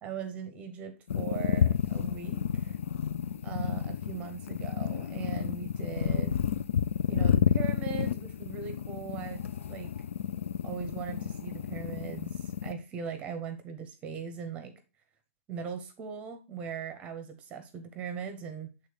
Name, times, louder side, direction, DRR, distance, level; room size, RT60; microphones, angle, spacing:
voice 1, 0.0-2.8 3.4-6.4 7.1-9.9 10.6-14.7 15.5-18.7, right 7 dB, 15° right, 8 dB, 0.8 m, -39 dB
sound 1, 1.1-12.7, left 8 dB, 70° left, 0.4 m, -30 dB
6.3 x 3.6 x 5.0 m, 0.29 s
hypercardioid pair, 160°, 7 cm